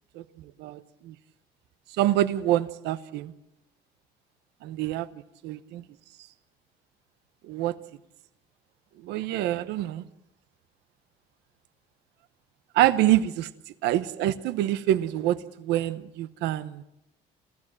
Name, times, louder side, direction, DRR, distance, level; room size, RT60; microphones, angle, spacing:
voice 1, 2.0-3.3 4.6-5.1 5.4-5.8 7.5-7.7 9.1-10.0 12.7-13.5 13.8-16.8, right 13 dB, 85° right, 14 dB, 1.0 m, -26 dB
28.0 x 14.5 x 7.6 m, 0.85 s
cardioid pair, 110°, 17 cm